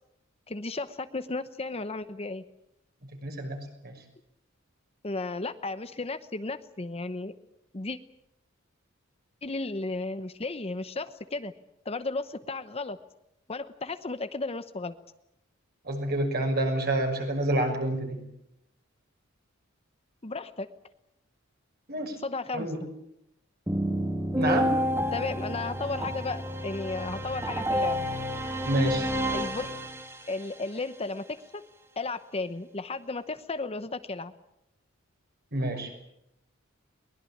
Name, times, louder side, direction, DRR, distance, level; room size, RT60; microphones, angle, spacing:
voice 1, 0.5-2.4 5.0-7.3 7.7-8.0 9.4-11.5 11.8-13.0 13.5-14.9 20.2-20.7 22.2-22.9 25.1-28.1 29.3-29.7 30.3-31.6 32.0-34.3, left 3 dB, 30° left, 10 dB, 0.9 m, -34 dB
voice 2, 3.2-3.9 15.8-18.2 21.9-22.2 22.5-22.8 24.4-24.8 28.6-29.1 35.5-35.9, right 1 dB, 50° right, 4 dB, 6.3 m, -28 dB
sound 1, 23.7-30.4, equal, 15° right, 2.4 m, -30 dB
22.5 x 20.5 x 8.7 m, 0.81 s
head